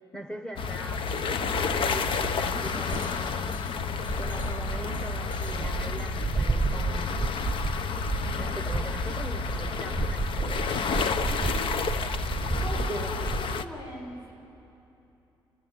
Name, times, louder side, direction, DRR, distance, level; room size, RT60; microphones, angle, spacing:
voice 1, 0.1-1.1 1.7-3.6 4.2-7.2 8.4-10.7 12.9-13.2, right 1 dB, 10° left, 4 dB, 1.3 m, -40 dB
sound 1, 0.6-13.7, left 5 dB, 70° left, 0.9 m, -30 dB
voice 2, 0.8-1.2 11.0-11.6 12.6-14.3, left 1 dB, 50° left, 0 dB, 6.4 m, -41 dB
sound 2, 1.1-1.2 1.6-13.4, right 4 dB, 15° right, 0.7 m, -32 dB
29.5 x 15.5 x 9.2 m, 2.9 s
cardioid pair, 115°, 9 cm